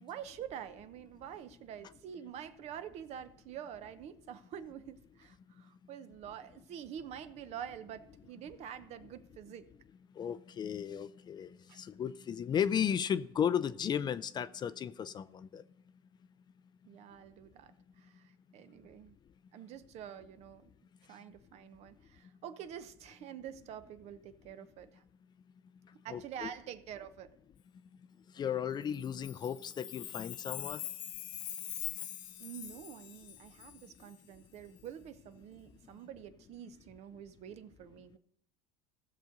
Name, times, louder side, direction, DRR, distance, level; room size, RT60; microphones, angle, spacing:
voice 1, 0.0-9.7 11.7-11.8 16.8-19.1 19.5-20.7 21.1-25.0 26.0-27.3 32.4-38.2, right 9 dB, 50° right, 0.8 m, -47 dB
voice 2, 10.2-15.6 26.1-26.5 28.4-30.8, left 8 dB, 30° left, 0.5 m, -35 dB
Chime, 28.9-34.1, left 12 dB, 65° left, 0.9 m, -43 dB
16.0 x 6.7 x 3.9 m
supercardioid pair, 105°, 14 cm